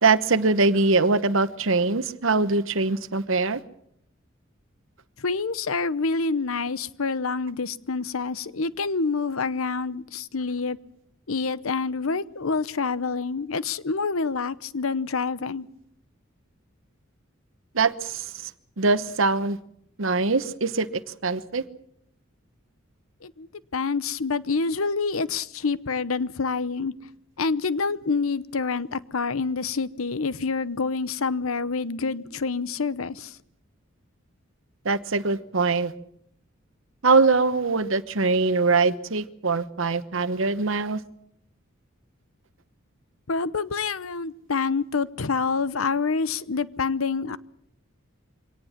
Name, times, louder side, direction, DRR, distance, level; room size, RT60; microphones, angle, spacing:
voice 1, 0.0-3.6 17.7-18.5 18.8-19.6 20.0-20.9 21.2-21.6 34.8-35.9 37.0-41.0, right 3 dB, 70° right, 13 dB, 1.1 m, -22 dB
voice 2, 5.2-10.8 11.3-15.7 23.2-23.5 23.7-26.9 27.4-33.3 43.3-47.4, left 4 dB, 85° left, 17 dB, 0.9 m, -27 dB
24.0 x 18.5 x 7.4 m, 0.72 s
head